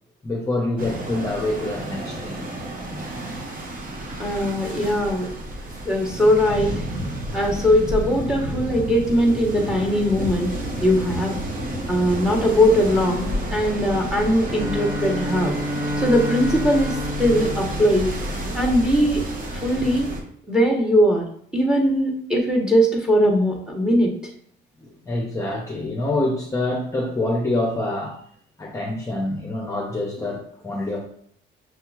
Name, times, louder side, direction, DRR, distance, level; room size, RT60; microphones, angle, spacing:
voice 1, 0.2-2.5 24.8-28.2 28.6-31.0, left 2 dB, 15° left, -2 dB, 0.7 m, -26 dB
sound 1, 0.8-20.2, right 1 dB, 45° right, 0.9 m, -30 dB
voice 2, 4.2-5.3 5.8-6.7 7.3-10.5 10.8-11.4 11.9-15.5 16.0-18.1 18.5-19.2 19.5-20.1 20.5-21.3 21.5-24.1, equal, 5° right, 0 dB, 1.1 m, -20 dB
Bowed string instrument, 14.4-18.8, left 1 dB, 65° right, 1.6 m, -30 dB
6.1 x 2.8 x 2.4 m, 0.63 s
cardioid pair, 90°, 20 cm